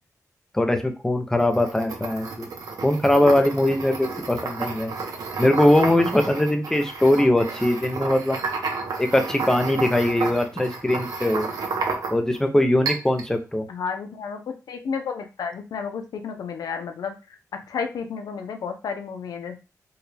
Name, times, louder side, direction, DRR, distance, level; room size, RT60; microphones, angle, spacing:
voice 1, 0.5-2.5 2.8-4.9 5.4-8.4 9.0-11.5 12.1-13.6, left 1 dB, 10° left, 6 dB, 0.6 m, -21 dB
sound 1, 1.4-12.4 12.9-13.3, right 4 dB, 75° right, 0.8 m, -31 dB
voice 2, 13.7-19.6, left 6 dB, 85° left, 6 dB, 0.6 m, -32 dB
4.6 x 2.3 x 3.3 m, 0.31 s
wide cardioid pair, 120°, 6 cm